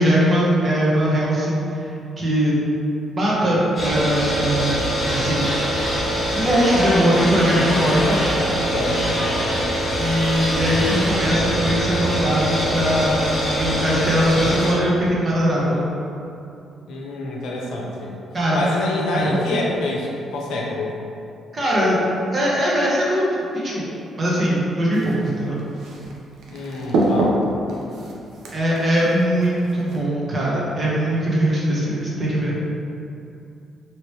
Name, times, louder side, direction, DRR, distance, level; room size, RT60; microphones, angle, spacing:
voice 1, 0.0-1.9 2.2-2.6 3.1-4.8 5.1-5.9 6.3-8.2 10.0-15.8 18.3-18.6 19.1-19.4 21.5-22.0 22.3-23.3 23.5-23.9 24.2-25.6 28.5-32.6, equal, 35° right, -6 dB, 0.9 m, -21 dB
sound 1, 3.8-14.7, equal, 40° left, 1.1 m, -23 dB
voice 2, 8.7-9.3 16.9-18.2 18.5-20.9 26.5-27.4, left 2 dB, 85° left, -2 dB, 0.5 m, -26 dB
sound 2, 24.9-30.0, right 1 dB, 75° right, 0.5 m, -27 dB
3.0 x 2.9 x 3.1 m, 2.7 s
cardioid pair, 90°, 0 cm